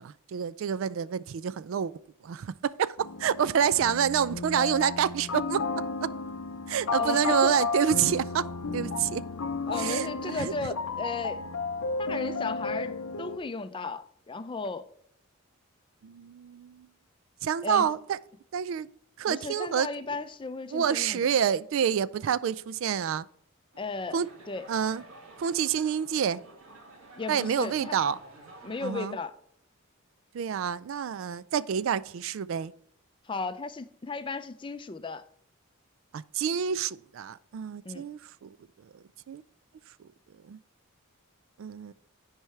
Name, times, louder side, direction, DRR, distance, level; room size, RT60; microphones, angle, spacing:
voice 1, 0.0-1.9 2.2-5.7 6.7-9.2 9.8-10.5 16.0-16.9 17.4-18.2 18.5-18.9 19.2-19.9 20.7-23.2 24.1-24.3 24.7-25.0 25.4-26.4 27.3-28.2 28.8-29.2 30.3-32.7 36.1-38.6 39.3-39.4 40.5-40.6 41.6-41.9, right 8 dB, 65° right, 0.3 m, -28 dB
sound 1, 3.0-13.4, left 4 dB, 85° left, 0.6 m, -33 dB
voice 2, 7.0-7.5 9.7-11.4 12.0-14.9 17.6-17.9 19.3-21.3 23.8-24.2 24.5-24.7 27.1-28.0 28.6-29.4 33.2-35.3 37.8-38.1, left 4 dB, 25° left, 0.4 m, -35 dB
sound 2, 23.7-28.9, right 2 dB, 90° right, 2.0 m, -51 dB
10.0 x 4.6 x 3.2 m
head